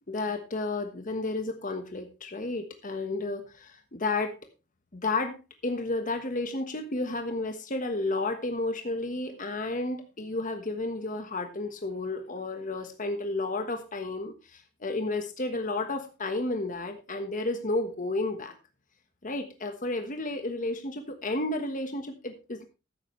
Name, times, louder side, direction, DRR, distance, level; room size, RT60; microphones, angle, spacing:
voice 1, 0.1-4.3 4.9-5.4 5.6-18.5 19.2-22.6, left 2 dB, 40° left, 6 dB, 1.4 m, -32 dB
13.5 x 10.5 x 3.2 m, 0.30 s
head